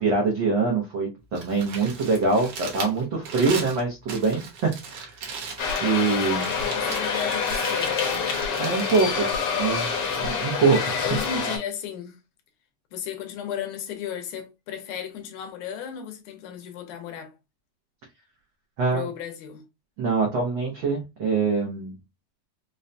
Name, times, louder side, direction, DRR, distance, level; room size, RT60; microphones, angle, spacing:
voice 1, 0.0-5.3 5.8-6.6 8.6-9.3 9.6-9.9 10.2-11.0 18.8-19.1 20.0-21.9, right 4 dB, 85° right, 1.0 m, -24 dB
Crumpling crinkling, 1.2-10.3, right 5 dB, 65° right, 1.6 m, -39 dB
sound 1, 5.6-11.6, left 5 dB, 60° left, 1.6 m, -27 dB
voice 2, 6.4-8.2 10.6-10.7 11.0-12.2 12.9-17.3 18.9-19.6, left 8 dB, 80° left, 2.3 m, -35 dB
5.3 x 2.2 x 2.6 m
omnidirectional pair, 3.5 m